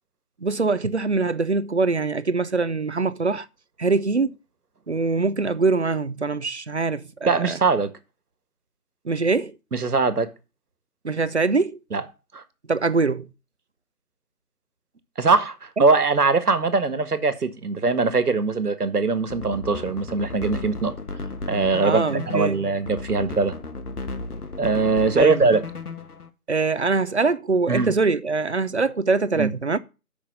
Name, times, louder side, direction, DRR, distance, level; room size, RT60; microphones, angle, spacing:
voice 1, 0.4-3.5 3.8-4.3 4.9-7.6 9.0-9.6 11.0-11.8 12.7-13.3 21.8-22.6 25.2-25.5 26.5-29.8, right 3 dB, 50° right, 0.7 m, -23 dB
voice 2, 7.3-7.9 9.7-10.3 11.9-12.0 12.3-12.4 15.2-20.9 21.5-23.6 24.6-25.6 27.7-27.9 29.4-29.5, right 4 dB, 80° right, 1.7 m, -21 dB
sound 1, 19.2-26.3, left 3 dB, 80° left, 1.5 m, -34 dB
6.5 x 6.1 x 6.8 m
figure-of-eight pair, 175°, 45 cm